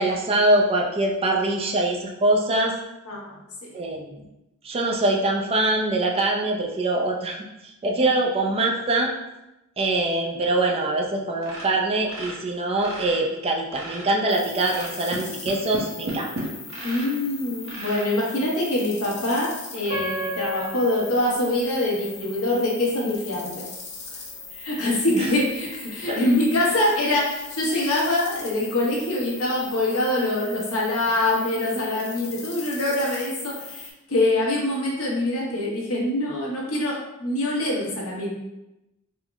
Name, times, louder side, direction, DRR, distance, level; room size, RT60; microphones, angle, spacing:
voice 1, 0.0-2.7 3.7-4.2 4.6-7.4 7.6-9.1 9.8-16.3 25.1-25.3 26.1-26.2, right 2 dB, 25° right, 1 dB, 0.3 m, -23 dB
sound 1, 11.4-13.2 13.5-14.2 14.6-17.2 17.6-18.1 18.7-18.8 19.2-19.3 19.8-19.9, right 1 dB, 65° right, 0.9 m, -35 dB
sound 2, 14.3-33.9, left 4 dB, 35° left, 0.5 m, -40 dB
voice 2, 16.8-23.7 24.5-38.3, left 1 dB, 75° left, -3 dB, 1.0 m, -24 dB
Piano, 19.9-22.9 23.5-23.6 24.2-24.5, left 2 dB, 85° right, 1.3 m, -35 dB
3.6 x 2.0 x 3.4 m, 0.95 s
head